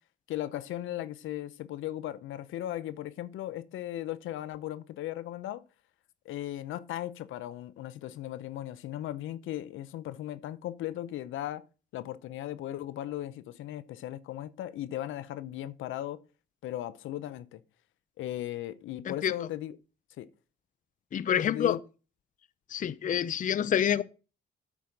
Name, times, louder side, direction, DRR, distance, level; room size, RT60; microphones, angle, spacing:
voice 1, 0.3-5.6 6.3-11.6 11.9-16.2 16.6-17.6 18.2-19.8 20.2-20.3 21.3-21.8, left 13 dB, 85° left, 0.8 m, -37 dB
voice 2, 21.1-21.8 22.7-24.0, left 9 dB, 40° left, 0.5 m, -27 dB
8.5 x 5.6 x 6.5 m
cardioid pair, 90°, 20 cm